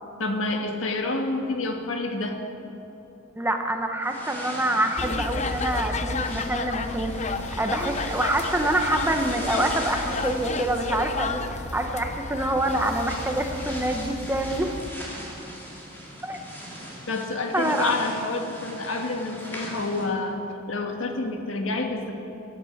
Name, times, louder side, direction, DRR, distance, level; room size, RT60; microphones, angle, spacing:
voice 1, 0.2-2.4 17.1-20.4 20.7-22.1, left 3 dB, 85° left, 3 dB, 1.6 m, -28 dB
voice 2, 3.4-14.7 16.2-16.4 17.5-17.9, right 1 dB, 10° right, 4 dB, 1.0 m, -26 dB
sound 1, 4.0-20.0, equal, 10° left, 3.0 m, -40 dB
Boattrip on Li-river China, 5.0-14.9, left 3 dB, 35° left, 0.6 m, -32 dB
17.0 x 9.3 x 7.2 m, 3.0 s
head